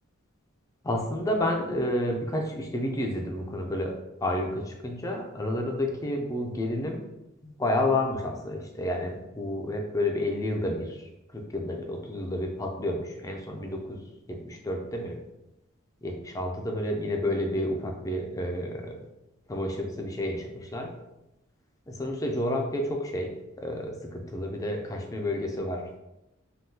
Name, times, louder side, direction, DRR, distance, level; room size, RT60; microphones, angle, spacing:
voice 1, 0.8-3.9 4.2-7.0 7.4-14.0 14.3-15.2 16.0-19.1 19.5-20.9 21.9-23.3 23.6-26.0, left 1 dB, 15° left, 2 dB, 0.3 m, -30 dB
3.5 x 2.2 x 2.7 m, 0.93 s
head